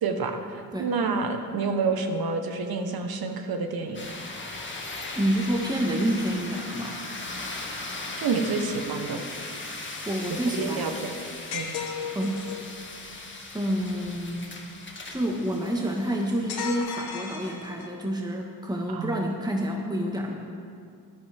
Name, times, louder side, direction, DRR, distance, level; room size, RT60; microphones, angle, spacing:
voice 1, 0.0-0.4 0.8-4.1 8.2-9.2 10.3-11.2 11.5-11.7 18.9-19.3, right 4 dB, 65° right, 6 dB, 1.3 m, -28 dB
sound 1, 3.9-16.8, left 2 dB, 30° left, 2.0 m, -38 dB
voice 2, 5.1-7.0 10.0-11.0 12.1-12.4 13.5-14.5 15.1-20.4, equal, 10° right, 0 dB, 1.5 m, -28 dB
sound 2, 11.5-12.7 16.5-18.1, left 6 dB, 70° left, 1.6 m, -34 dB
13.0 x 11.5 x 3.6 m, 2.2 s
supercardioid pair, 55°, 40 cm